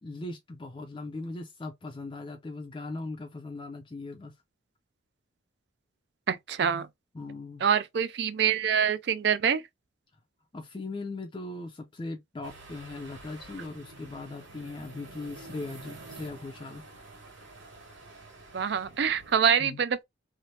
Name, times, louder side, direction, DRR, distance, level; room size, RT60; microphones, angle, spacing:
voice 1, 0.0-4.3 7.1-7.6 10.5-16.8 19.6-19.8, left 2 dB, 25° left, 0.4 m, -39 dB
voice 2, 6.3-6.9 7.6-9.6 18.5-20.0, right 7 dB, 60° right, 0.4 m, -25 dB
sound 1, 12.4-19.4, right 2 dB, 80° right, 1.7 m, -48 dB
3.2 x 2.0 x 2.7 m
head